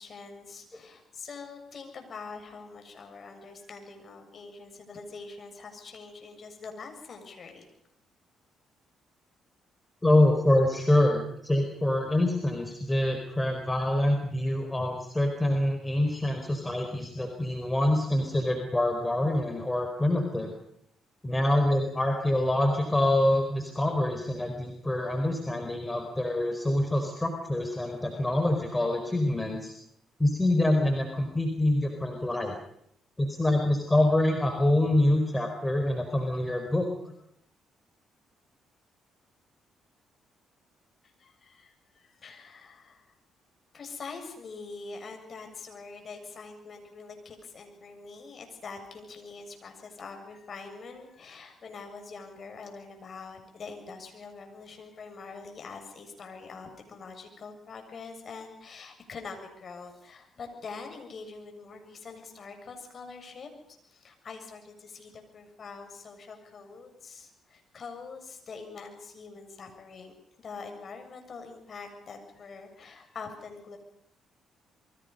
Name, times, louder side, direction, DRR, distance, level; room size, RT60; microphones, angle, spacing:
voice 1, 0.0-7.7 41.0-43.2 43.7-70.1 70.4-73.8, left 4 dB, 50° left, 5 dB, 7.1 m, -44 dB
voice 2, 10.0-20.5 21.2-29.7 30.2-32.5 33.2-36.9, left 1 dB, 20° left, 5 dB, 4.7 m, -25 dB
27.5 x 23.0 x 5.6 m, 0.74 s
hypercardioid pair, 50°, 0 cm